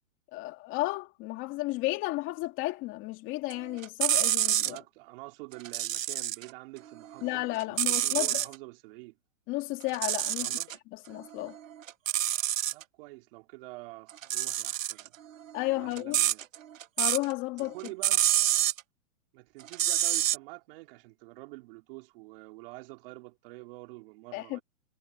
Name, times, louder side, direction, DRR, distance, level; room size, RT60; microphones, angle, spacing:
voice 1, 0.3-4.8 7.2-8.4 9.5-10.5 10.9-11.6 15.5-16.2 17.0-17.7 24.3-24.6, left 20 dB, 30° left, 2.4 m, -33 dB
sound 1, 3.5-4.8 5.5-6.5 6.9-8.5 9.8-10.8 11.2-12.8 14.1-17.3 17.6-18.8 19.6-20.4, right 12 dB, 70° right, 1.8 m, -28 dB
voice 2, 4.6-9.2 10.4-10.7 12.7-15.1 15.7-16.4 17.7-18.3 19.3-24.6, right 23 dB, 40° right, 3.9 m, -47 dB
hypercardioid pair, 150°, 41 cm